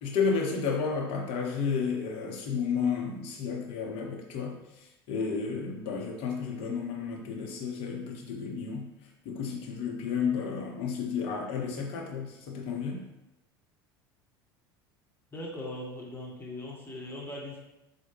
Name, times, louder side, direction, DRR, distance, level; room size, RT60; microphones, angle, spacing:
voice 1, 0.0-8.9 9.2-13.0, left 5 dB, 50° left, 0 dB, 0.7 m, -32 dB
voice 2, 15.3-17.6, left 1 dB, 20° left, -3 dB, 1.0 m, -39 dB
4.4 x 2.1 x 3.1 m, 0.96 s
figure-of-eight pair, 70°, 13 cm